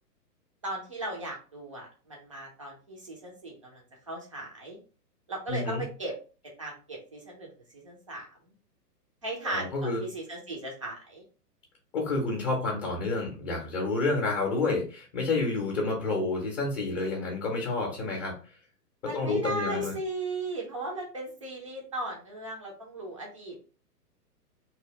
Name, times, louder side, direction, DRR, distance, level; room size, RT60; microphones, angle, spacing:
voice 1, 0.6-4.8 5.3-6.1 6.6-8.5 9.2-11.2 19.0-23.7, right 1 dB, 25° right, -1 dB, 0.4 m, -37 dB
voice 2, 5.5-5.8 9.4-10.0 11.9-18.4 19.1-19.9, left 3 dB, 25° left, -1 dB, 0.6 m, -29 dB
2.8 x 2.0 x 3.0 m, 0.36 s
figure-of-eight pair, 115°, 49 cm